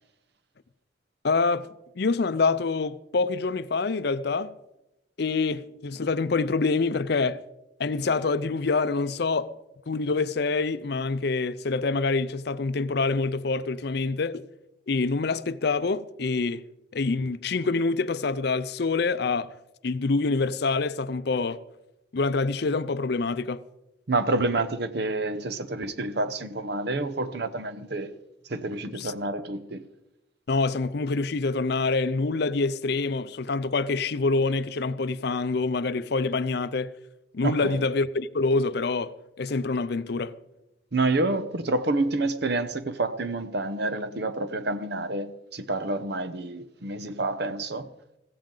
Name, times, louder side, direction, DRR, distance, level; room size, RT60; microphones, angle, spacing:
voice 1, 1.2-4.5 5.2-7.4 7.8-9.5 9.9-14.4 14.9-16.6 16.9-19.5 19.8-21.6 22.1-23.6 28.9-29.1 30.5-36.9 37.3-40.3, left 3 dB, 55° left, 0.5 m, -26 dB
voice 2, 24.1-28.2 28.4-29.9 37.4-37.8 40.9-47.9, right 2 dB, 55° right, 0.8 m, -28 dB
16.0 x 15.5 x 3.9 m
head